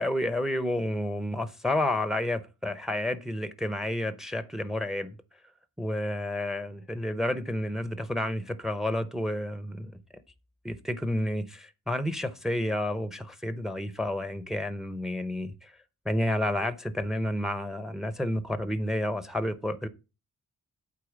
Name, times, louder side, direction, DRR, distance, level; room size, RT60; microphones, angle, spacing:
voice 1, 0.0-5.2 5.8-9.9 10.6-15.7 16.0-19.9, left 1 dB, ahead, 0.8 m, -30 dB
8.3 x 4.4 x 7.2 m
wide cardioid pair, 130°, 33 cm